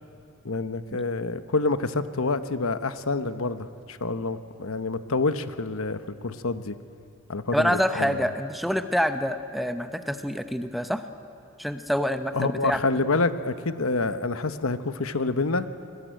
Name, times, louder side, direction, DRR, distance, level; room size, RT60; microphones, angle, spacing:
voice 1, 0.4-6.8 7.3-8.2 12.3-15.7, left 3 dB, 75° left, 11 dB, 1.0 m, -27 dB
voice 2, 7.5-11.0 11.6-12.8, equal, ahead, 9 dB, 0.8 m, -26 dB
26.0 x 20.5 x 9.2 m, 2.7 s
head